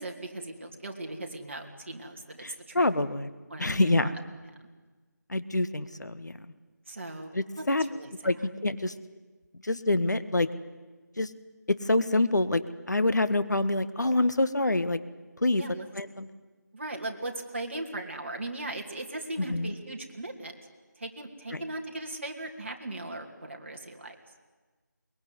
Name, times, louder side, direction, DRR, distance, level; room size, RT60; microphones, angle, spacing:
voice 1, 0.0-2.9 3.5-4.1 4.6-4.7 6.9-7.6 7.9-8.1 15.6-15.9 16.7-20.5 21.0-24.2, right 2 dB, 40° right, 2 dB, 2.9 m, -38 dB
voice 2, 2.4-3.3 3.6-4.1 5.3-6.5 7.3-7.8 8.2-8.4 8.6-8.9 9.6-10.5 11.2-11.3 11.7-12.6 12.9-15.0 15.4-15.6 15.9-16.3 19.4-19.7 21.5-21.6, left 2 dB, 65° left, 12 dB, 1.7 m, -26 dB
22.5 x 21.5 x 9.6 m, 1.3 s
figure-of-eight pair, 175°, 10 cm